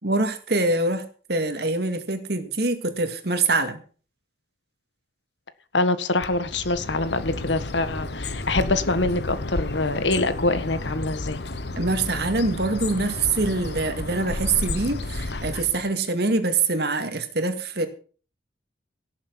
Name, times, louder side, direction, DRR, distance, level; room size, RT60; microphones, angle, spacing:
voice 1, 0.0-3.8 11.8-17.9, right 3 dB, 60° right, 8 dB, 2.2 m, -24 dB
voice 2, 5.7-11.4, left 2 dB, 85° left, 12 dB, 1.5 m, -25 dB
Bird, 6.2-15.9, left 2 dB, 65° left, 1.1 m, -32 dB
17.5 x 7.5 x 6.3 m, 0.40 s
head